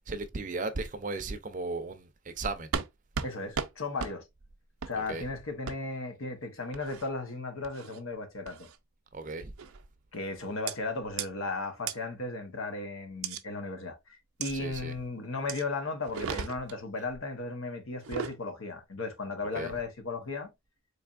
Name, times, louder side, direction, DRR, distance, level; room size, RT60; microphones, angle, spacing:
voice 1, 0.1-2.7 5.1-5.3 9.1-9.5 14.5-14.9 19.5-19.7, right 3 dB, 40° right, 0.5 m, -36 dB
sound 1, 2.7-2.9 3.1-3.3 3.5-3.7 4.0-4.1 4.8-4.9 5.7-5.8 6.7-7.1 7.6-8.0 8.5-8.8 9.6-9.8 10.7-10.8 11.2-11.3 11.9-12.0 13.2-13.4 14.4-14.5 15.5-15.6 16.0-16.8 17.9-18.4, right 6 dB, 90° right, 0.5 m, -35 dB
voice 2, 3.2-4.2 4.8-8.7 10.1-20.5, left 3 dB, 75° left, 1.0 m, -36 dB
4.1 x 3.3 x 2.4 m
head